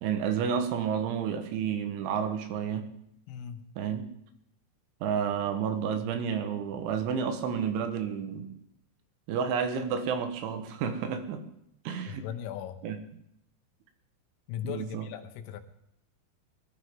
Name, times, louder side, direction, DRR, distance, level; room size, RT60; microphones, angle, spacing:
voice 1, 0.0-2.9 3.8-4.1 5.0-8.5 9.3-11.4 11.9-12.3 12.8-13.0 14.6-15.1, right 7 dB, 75° right, 7 dB, 3.5 m, -30 dB
voice 2, 3.3-3.6 12.1-12.8 14.5-15.6, left 10 dB, 90° left, 7 dB, 3.8 m, -38 dB
21.5 x 12.0 x 3.7 m, 0.77 s
omnidirectional pair, 5.7 m